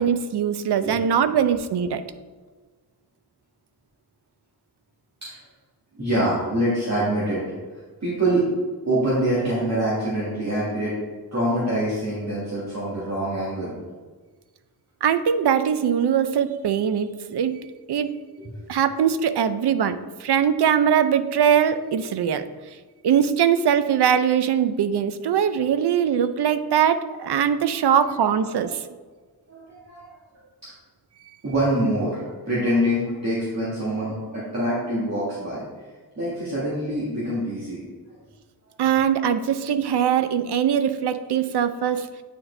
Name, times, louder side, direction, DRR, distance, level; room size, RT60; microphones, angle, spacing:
voice 1, 0.0-2.0 15.0-17.6 17.9-18.1 18.7-22.5 23.0-28.8 38.8-42.1, right 8 dB, 75° right, 12 dB, 0.5 m, -21 dB
voice 2, 6.0-7.4 8.0-8.5 8.9-10.9 11.3-13.7 18.4-18.6 27.9-28.0 28.6-28.7 29.5-30.1 31.4-35.6 36.2-37.8, right 1 dB, 40° right, -9 dB, 1.9 m, -25 dB
9.1 x 4.7 x 3.3 m, 1.4 s
wide cardioid pair, 150°, 40 cm